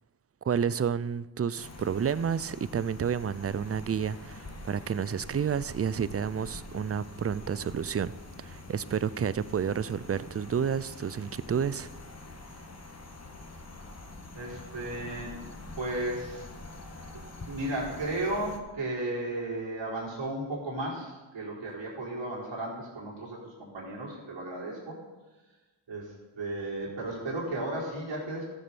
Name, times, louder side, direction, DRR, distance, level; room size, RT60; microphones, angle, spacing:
voice 1, 0.4-8.1 8.4-11.9, right 7 dB, 30° right, 18 dB, 0.5 m, -30 dB
sound 1, 1.6-18.6, left 2 dB, 35° left, 1.7 m, -45 dB
voice 2, 14.3-15.5 15.8-16.5 17.4-25.0 25.9-28.4, right 1 dB, 65° right, -5 dB, 4.4 m, -34 dB
13.0 x 6.9 x 6.9 m, 1.2 s
cardioid pair, 50°, 47 cm